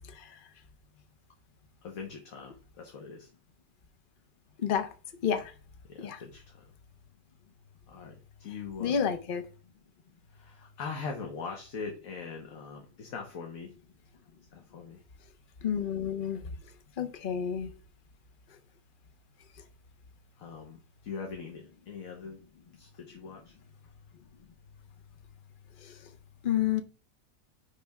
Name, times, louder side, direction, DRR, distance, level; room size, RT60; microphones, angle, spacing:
voice 1, 0.1-0.4 4.6-4.9 5.2-5.5 6.0-6.2 8.8-9.4 15.6-16.6 17.0-17.7 25.8-26.0 26.4-26.8, left 8 dB, 45° left, 8 dB, 0.8 m, -30 dB
voice 2, 1.8-3.3 5.9-6.7 7.9-9.0 10.3-13.7 14.5-15.0 20.4-22.4 22.8-23.6, left 5 dB, 60° left, 1 dB, 1.4 m, -42 dB
9.6 x 3.4 x 3.5 m, 0.34 s
omnidirectional pair, 1.7 m